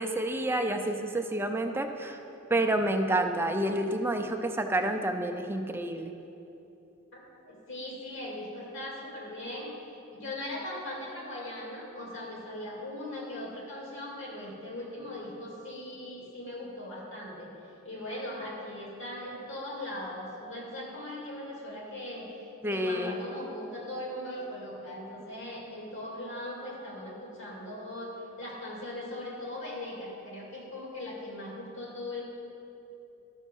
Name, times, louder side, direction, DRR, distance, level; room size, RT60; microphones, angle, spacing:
voice 1, 0.0-2.2 2.5-6.1 22.6-23.2, right 1 dB, 10° right, 5 dB, 0.5 m, -29 dB
voice 2, 7.4-9.7 10.1-17.5 17.8-22.3 22.7-32.2, left 1 dB, 60° left, -3 dB, 2.6 m, -39 dB
12.5 x 6.4 x 5.4 m, 2.9 s
head